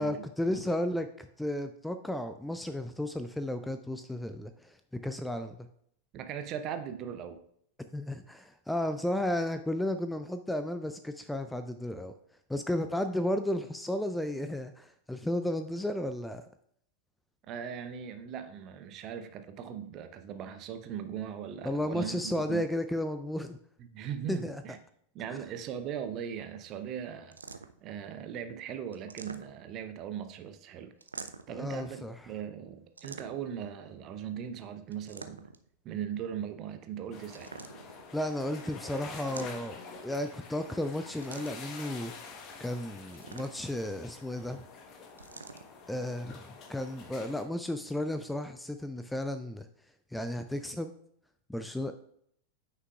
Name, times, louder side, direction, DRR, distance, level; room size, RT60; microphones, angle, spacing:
voice 1, 0.0-5.7 7.9-12.1 12.5-16.4 21.6-23.6 24.3-24.6 31.5-32.3 38.1-42.1 42.6-44.6 45.9-46.4 46.7-49.7 50.1-50.9 51.5-51.9, left 1 dB, 5° left, 9 dB, 0.4 m, -33 dB
voice 2, 6.1-7.4 17.5-22.6 23.8-24.8 25.1-27.4 27.8-30.9 31.5-35.5 35.8-37.5, right 8 dB, 35° right, 9 dB, 0.7 m, -39 dB
sound 1, 27.3-27.9 28.9-29.8 31.0-31.6 33.0-33.6 34.9-35.7 37.3-38.0 39.2-39.9 41.2-41.8 43.1-43.8 45.2-45.7, right 4 dB, 75° right, 0.4 m, -46 dB
sound 2, 37.1-47.4, left 4 dB, 35° left, 1.1 m, -47 dB
9.3 x 5.6 x 2.4 m, 0.68 s
figure-of-eight pair, 90°, 0 cm